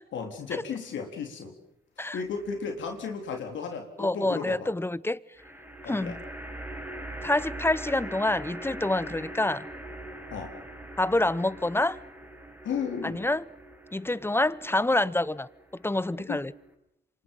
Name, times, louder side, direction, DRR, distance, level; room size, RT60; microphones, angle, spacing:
voice 1, 0.1-1.5 2.0-4.7 5.8-6.1 10.3-10.5 12.6-13.2 16.3-16.4, left 5 dB, 80° left, 3.8 m, -34 dB
sound 1, 2.3-2.9 5.4-16.7, right 1 dB, 10° right, 6.1 m, -42 dB
voice 2, 4.0-5.2 5.9-6.2 7.2-9.7 11.0-12.0 13.0-13.4 13.9-15.5 15.8-16.5, left 2 dB, 10° left, 0.8 m, -27 dB
27.5 x 25.5 x 5.6 m
cardioid pair, 65°, 19 cm